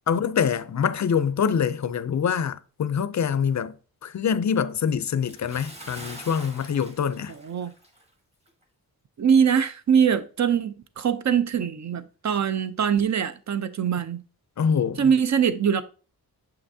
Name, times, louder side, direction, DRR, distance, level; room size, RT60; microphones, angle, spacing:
voice 1, 0.1-3.7 4.0-7.3 14.6-15.1, left 7 dB, 50° left, 0.5 m, -25 dB
Bathtub (filling or washing) / Splash splatter, 5.3-8.1 8.5-8.6 9.2-9.3, right 1 dB, 15° right, 1.2 m, -44 dB
voice 2, 7.3-7.7 9.2-14.2 15.0-15.8, right 7 dB, 45° right, 0.6 m, -23 dB
7.3 x 5.7 x 2.7 m
wide cardioid pair, 95°, 37 cm